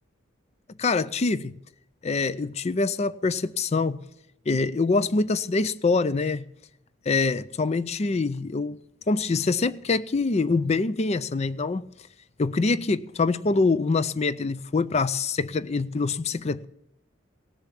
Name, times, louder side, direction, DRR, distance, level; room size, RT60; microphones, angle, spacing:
voice 1, 0.8-1.5 2.0-4.0 4.5-6.5 7.1-8.8 9.1-11.8 12.4-16.7, left 3 dB, 35° left, 0.5 m, -25 dB
18.0 x 6.9 x 8.3 m
head